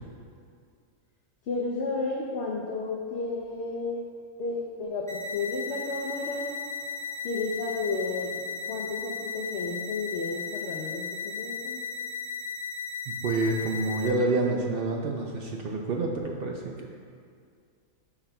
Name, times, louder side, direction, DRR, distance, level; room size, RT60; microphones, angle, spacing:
voice 1, 1.5-4.0 4.4-6.6 7.2-11.8, left 3 dB, 60° left, -1 dB, 0.8 m, -32 dB
sound 1, 5.1-14.1, left 5 dB, 5° left, 0.6 m, -36 dB
voice 2, 13.1-16.9, right 2 dB, 60° right, 0 dB, 0.6 m, -28 dB
10.0 x 5.8 x 2.2 m, 2.2 s
omnidirectional pair, 1.4 m